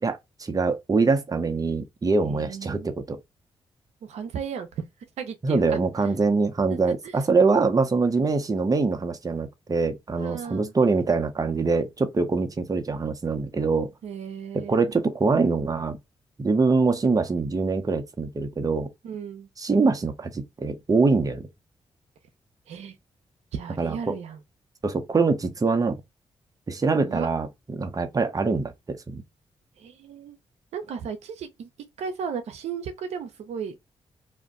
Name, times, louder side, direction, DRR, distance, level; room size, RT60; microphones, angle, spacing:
voice 1, 0.0-3.2 5.4-13.9 14.5-16.0 16.4-18.9 19.6-21.5 23.8-24.2 24.8-26.0 26.7-29.2, right 4 dB, 35° right, 0.7 m, -24 dB
voice 2, 2.2-2.9 4.0-4.8 5.2-5.8 7.0-7.2 10.2-10.7 14.0-14.9 19.0-19.5 22.7-23.0 23.5-24.4 27.0-27.3 29.8-30.4 30.7-31.7 32.0-33.7, right 7 dB, 85° right, 0.6 m, -35 dB
2.5 x 2.1 x 3.6 m
cardioid pair, 55°, 11 cm